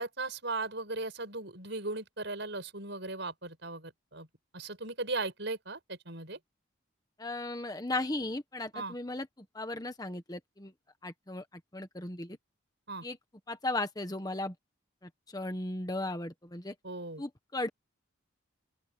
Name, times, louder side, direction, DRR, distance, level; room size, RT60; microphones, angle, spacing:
voice 1, 0.0-4.3 4.5-6.4 8.7-8.9 12.9-13.0 16.8-17.2, right 3 dB, 60° right, 6.9 m, -37 dB
voice 2, 7.2-9.3 9.5-10.7 11.0-11.4 11.7-12.4 13.0-13.2 13.5-14.5 15.3-16.7 17.2-17.7, left 2 dB, 20° left, 1.2 m, -36 dB
open air
head